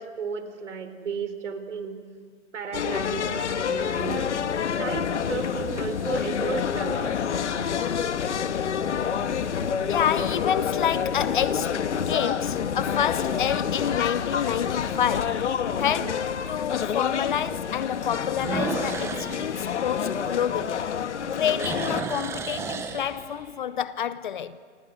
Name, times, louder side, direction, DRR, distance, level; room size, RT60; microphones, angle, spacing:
voice 1, 0.0-2.0 2.5-4.4 4.8-7.2 15.9-16.2 21.4-21.7, right 6 dB, 75° right, 4.2 m, -34 dB
sound 1, 2.7-22.0, left 7 dB, 70° left, 1.8 m, -28 dB
sound 2, 4.7-5.3 6.0-6.1 11.3-11.8 12.3-12.4 12.9-13.0 13.3-13.4 14.9-15.0 18.3-20.9 21.2-23.6, right 4 dB, 5° right, 1.1 m, -34 dB
voice 2, 7.5-8.6 9.9-15.5 15.8-20.9 21.3-24.6, left 9 dB, 40° left, 0.9 m, -29 dB
28.0 x 26.0 x 8.1 m
hypercardioid pair, 160°, 37 cm